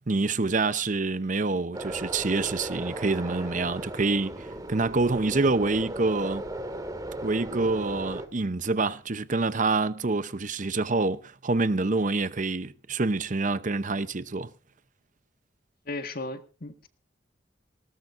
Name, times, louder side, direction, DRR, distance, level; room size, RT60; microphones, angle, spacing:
voice 1, 0.1-6.4 7.2-14.5, right 3 dB, 45° right, 0.8 m, -27 dB
sound 1, 1.7-8.3, right 1 dB, 20° right, 2.0 m, -36 dB
voice 2, 15.8-16.9, left 2 dB, 50° left, 1.7 m, -36 dB
19.5 x 18.5 x 2.6 m
head